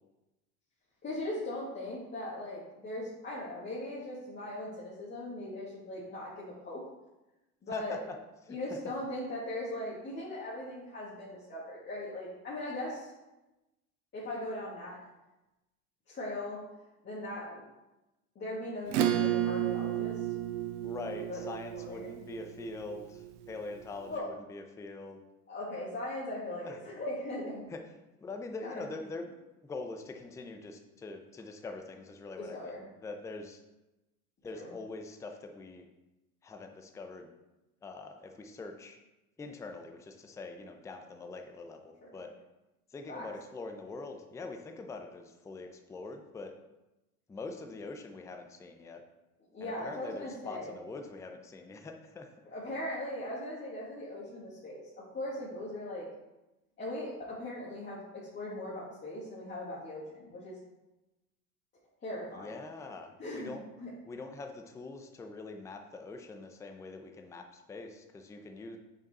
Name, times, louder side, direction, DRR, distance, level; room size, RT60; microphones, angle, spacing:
voice 1, 1.0-6.8 7.6-8.0 8.5-13.1 14.1-15.0 16.1-16.6 17.0-17.6 18.4-20.3 21.3-21.4 21.7-22.2 24.1-24.3 25.5-27.6 28.6-28.8 32.4-32.8 34.5-34.7 42.0-42.2 43.1-43.3 49.5-50.8 52.5-56.1 56.8-60.6 62.0-62.5 63.2-63.9, left 1 dB, 25° left, -8 dB, 1.8 m, -39 dB
voice 2, 8.4-8.8 20.8-25.2 26.6-26.8 27.7-27.8 28.2-29.3 29.6-33.6 34.4-35.9 36.4-37.3 37.8-39.0 39.4-42.3 42.9-46.5 47.3-49.0 49.6-52.3 62.3-63.6 64.1-68.8, left 3 dB, 5° left, 4 dB, 0.5 m, -43 dB
Acoustic guitar / Strum, 18.9-23.8, right 11 dB, 60° right, 0.8 m, -32 dB
5.3 x 5.3 x 4.1 m, 0.99 s
hypercardioid pair, 95°, 44 cm